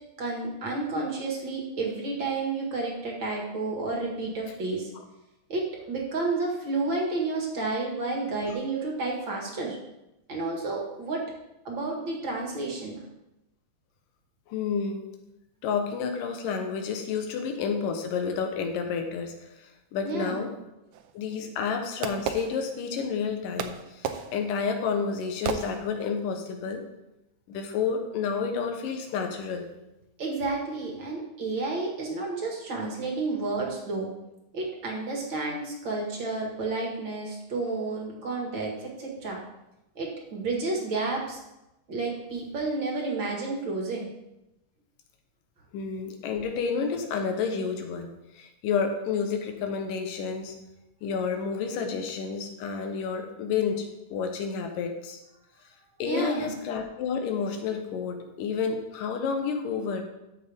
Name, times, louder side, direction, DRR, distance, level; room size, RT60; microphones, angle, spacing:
voice 1, 0.2-4.9 5.5-9.8 10.3-11.2 11.7-13.0 20.0-20.5 30.2-34.1 34.5-39.4 40.0-41.4 41.9-44.1 56.1-56.6, right 3 dB, 45° right, -1 dB, 2.0 m, -31 dB
voice 2, 14.5-15.1 15.6-20.5 21.1-26.8 27.5-29.7 45.7-50.6 51.0-55.2 56.0-60.0, left 6 dB, 85° left, 5 dB, 2.7 m, -30 dB
Fireworks, 20.9-23.1 23.6-26.3, right 8 dB, 75° right, 1.9 m, -35 dB
12.5 x 6.7 x 3.5 m, 0.93 s
omnidirectional pair, 3.8 m